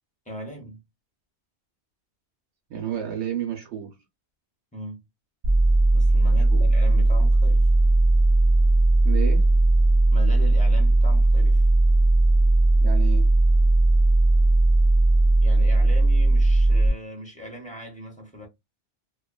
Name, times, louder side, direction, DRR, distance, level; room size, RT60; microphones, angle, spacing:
voice 1, 0.3-0.8 4.7-5.0 5.9-7.7 10.1-11.7 15.4-18.5, equal, 10° left, 0.7 m, -39 dB
voice 2, 2.7-4.0 6.4-6.7 9.0-9.5 12.8-13.3, right 9 dB, 85° right, 1.0 m, -31 dB
sound 1, 5.4-16.9, right 2 dB, 60° right, 0.8 m, -18 dB
2.4 x 2.2 x 2.3 m
omnidirectional pair, 1.1 m